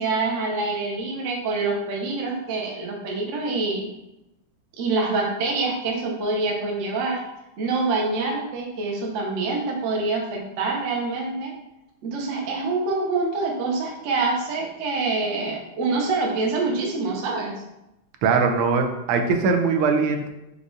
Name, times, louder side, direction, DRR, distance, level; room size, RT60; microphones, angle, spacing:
voice 1, 0.0-3.8 4.8-7.2 7.6-11.5 12.0-17.6, right 3 dB, 60° right, 0 dB, 0.8 m, -26 dB
voice 2, 18.2-20.3, right 4 dB, 85° right, 5 dB, 1.4 m, -21 dB
5.1 x 2.4 x 3.8 m, 0.91 s
omnidirectional pair, 2.3 m